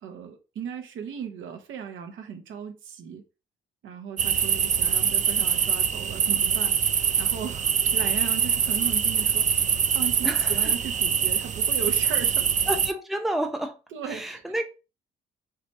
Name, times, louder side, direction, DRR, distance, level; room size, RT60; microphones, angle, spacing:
voice 1, 0.0-3.2 3.8-9.5 9.9-12.5 13.9-14.4, right 7 dB, 75° right, 1.0 m, -37 dB
sound 1, 4.2-12.9, right 7 dB, 40° right, 0.4 m, -24 dB
voice 2, 10.2-10.7 12.7-13.8 14.1-14.6, right 1 dB, ahead, 0.8 m, -30 dB
4.9 x 3.2 x 2.7 m
cardioid pair, 90°, 20 cm